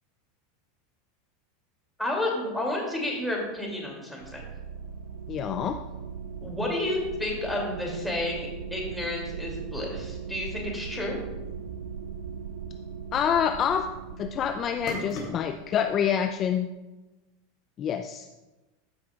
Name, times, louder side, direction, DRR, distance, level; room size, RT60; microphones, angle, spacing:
voice 1, 2.0-4.4 6.4-11.2, left 1 dB, 5° left, -2 dB, 2.7 m, -31 dB
sound 1, 2.9-15.7, left 2 dB, 55° left, 3.0 m, -47 dB
sound 2, 4.2-16.5, right 7 dB, 80° right, 0.4 m, -39 dB
voice 2, 5.3-5.8 13.1-16.7 17.8-18.3, left 8 dB, 35° left, 7 dB, 0.4 m, -27 dB
13.5 x 6.1 x 2.4 m, 1.1 s
hypercardioid pair, 105°, 0 cm